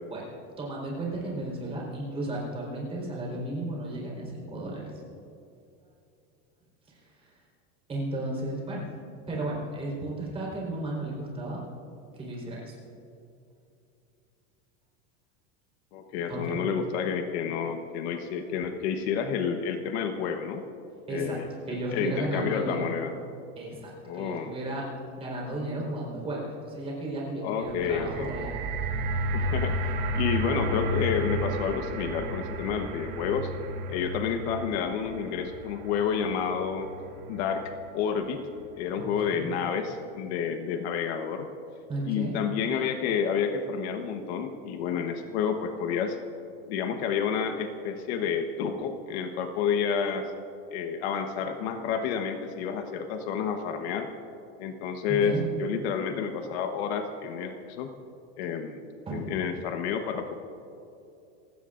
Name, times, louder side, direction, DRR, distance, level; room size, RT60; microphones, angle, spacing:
voice 1, 0.6-4.8 6.9-7.3 7.9-8.9 9.3-11.6 12.1-12.8 16.3-16.6 21.1-21.4 21.7-22.9 23.6-24.9 25.2-28.5 39.0-39.5 41.9-42.4 55.1-55.4 59.1-59.3, right 1 dB, 15° right, -4 dB, 4.2 m, -34 dB
voice 2, 15.9-20.6 21.1-23.1 24.0-24.5 27.4-28.3 29.3-29.8 30.1-33.5 33.9-36.9 37.3-38.4 38.8-41.5 42.1-46.2 46.7-50.3 50.7-54.1 54.6-57.9 58.4-58.8 59.1-60.3, left 7 dB, 60° left, 6 dB, 1.2 m, -30 dB
sound 1, 27.6-37.9 38.6-38.7, right 1 dB, 50° right, 1.7 m, -32 dB
29.0 x 16.5 x 2.6 m, 2.7 s
supercardioid pair, 175°, 36 cm